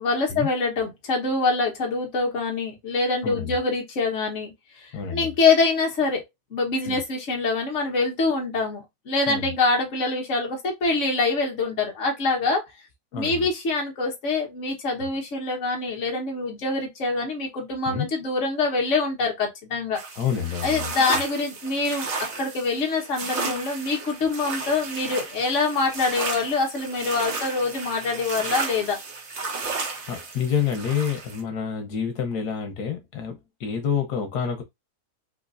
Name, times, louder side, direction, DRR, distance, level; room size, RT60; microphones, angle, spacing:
voice 1, 0.0-4.5 4.8-6.2 6.5-12.6 13.1-20.0 20.6-22.1 22.4-29.0, left 3 dB, 50° left, 1.5 m, -25 dB
voice 2, 3.2-3.6 4.9-5.3 6.9-7.0 9.3-9.5 13.1-13.5 15.0-15.1 17.9-18.1 20.2-20.9 29.6-34.6, left 7 dB, 85° left, 1.4 m, -28 dB
sound 1, 19.9-31.4, right 4 dB, 50° right, 1.0 m, -33 dB
4.3 x 2.6 x 2.5 m
omnidirectional pair, 1.7 m